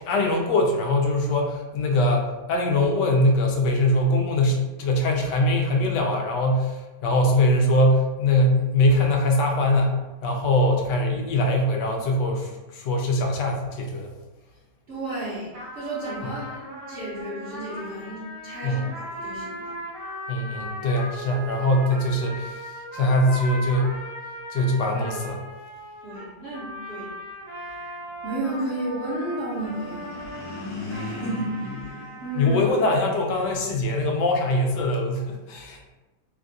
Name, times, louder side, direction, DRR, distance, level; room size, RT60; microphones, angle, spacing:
voice 1, 0.0-14.1 16.2-16.3 18.6-18.9 20.3-24.0 24.5-25.4 32.4-35.9, left 1 dB, 80° left, 1 dB, 1.2 m, -22 dB
voice 2, 14.9-19.7 26.0-27.1 27.5-28.0 28.2-32.6, right 1 dB, 50° right, -8 dB, 0.9 m, -33 dB
sound 1, 15.5-32.7, equal, 70° right, 1.4 m, -38 dB
sound 2, 29.5-33.0, left 2 dB, 60° left, 1.2 m, -37 dB
3.3 x 2.3 x 2.5 m, 1.1 s
omnidirectional pair, 1.8 m